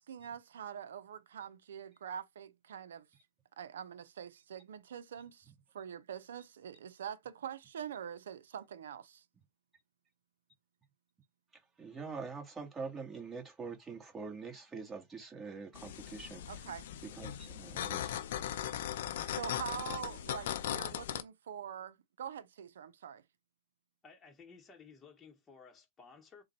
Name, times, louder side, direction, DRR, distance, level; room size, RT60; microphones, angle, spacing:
voice 1, 0.0-3.1 3.6-9.2 16.5-16.9 19.3-23.2, right 9 dB, 75° right, 0.5 m, -44 dB
voice 2, 11.8-16.4 17.2-18.2, right 4 dB, 15° right, 1.6 m, -44 dB
sound 1, 15.7-21.2, left 10 dB, 65° left, 0.5 m, -39 dB
voice 3, 24.0-26.4, left 5 dB, 20° left, 1.0 m, -56 dB
3.8 x 2.3 x 4.2 m
hypercardioid pair, 110°, 0 cm